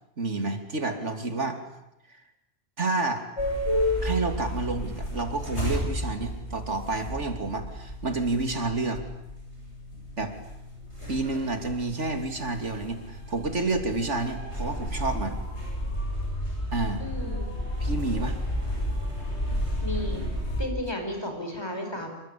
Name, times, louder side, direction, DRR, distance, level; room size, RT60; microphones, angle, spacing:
voice 1, 0.2-1.6 2.8-3.2 4.0-9.0 10.2-10.3 11.1-15.4 16.7-17.0 17.8-18.4, right 3 dB, 65° right, 6 dB, 3.2 m, -29 dB
sound 1, 3.4-20.6, left 1 dB, 60° left, 8.5 m, -32 dB
voice 2, 17.0-17.5 19.8-20.2 20.6-22.1, left 1 dB, 20° left, 4 dB, 5.7 m, -33 dB
27.0 x 24.5 x 8.6 m, 0.88 s
omnidirectional pair, 1.3 m